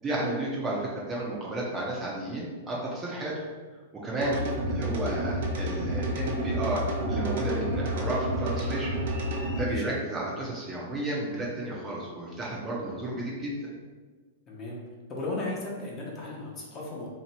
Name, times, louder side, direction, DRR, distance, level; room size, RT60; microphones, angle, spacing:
voice 1, 0.0-3.3 4.0-4.4 4.7-9.0 9.6-13.5, right 2 dB, 15° right, -4 dB, 0.7 m, -32 dB
sound 1, 4.2-9.6, equal, 65° right, 0.8 m, -30 dB
voice 2, 9.6-10.0 14.5-14.8 15.1-17.1, left 2 dB, 25° left, -4 dB, 0.9 m, -36 dB
2.9 x 2.8 x 4.3 m, 1.4 s
hypercardioid pair, 145°, 0 cm